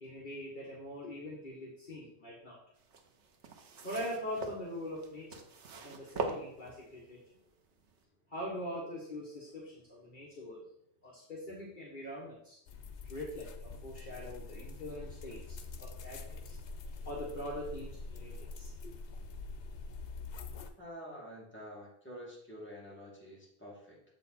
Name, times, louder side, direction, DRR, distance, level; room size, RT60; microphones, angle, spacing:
voice 1, 0.0-2.6 3.8-5.4 5.8-7.2 8.3-10.6 11.0-12.6 13.1-16.6 16.8-18.7, left 1 dB, 45° left, -5 dB, 1.5 m, -43 dB
sound 1, 2.8-7.1 7.8-7.9, right 3 dB, 85° right, 1.1 m, -41 dB
sound 2, 12.7-20.7, left 3 dB, 90° left, 1.0 m, -45 dB
voice 2, 20.8-24.0, equal, 10° left, -6 dB, 2.3 m, -48 dB
7.3 x 5.1 x 4.2 m, 0.73 s
omnidirectional pair, 1.1 m